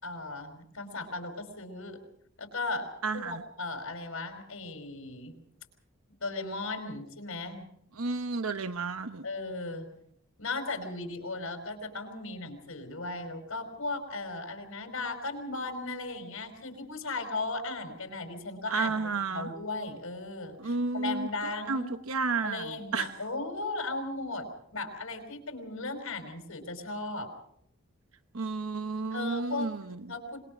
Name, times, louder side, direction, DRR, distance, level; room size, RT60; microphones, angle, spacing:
voice 1, 0.0-2.0 2.4-5.3 6.2-7.7 9.2-9.9 10.4-19.0 19.3-21.9 22.4-24.5 24.7-27.3 29.1-29.7 30.1-30.5, left 2 dB, 70° left, 6 dB, 5.0 m, -36 dB
voice 2, 3.0-3.4 8.0-9.3 18.7-19.5 20.6-23.1 28.3-30.1, right 4 dB, 80° right, 10 dB, 1.0 m, -32 dB
26.5 x 22.0 x 5.3 m, 0.70 s
head